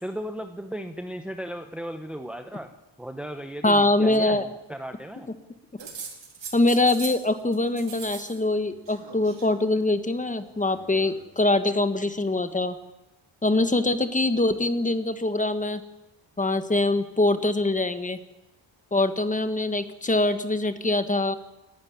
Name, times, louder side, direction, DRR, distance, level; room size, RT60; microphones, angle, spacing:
voice 1, 0.0-2.7 3.0-5.3, equal, ahead, 6 dB, 0.9 m, -36 dB
voice 2, 3.6-4.5 6.5-12.7 13.4-15.8 16.4-18.2 18.9-21.3, left 2 dB, 15° left, 10 dB, 1.3 m, -23 dB
sound 1, 5.8-7.3 7.5-8.4 8.6-9.5 10.5-11.2, right 6 dB, 65° right, 4.4 m, -41 dB
28.0 x 11.5 x 9.6 m, 1.0 s
wide cardioid pair, 155°, 47 cm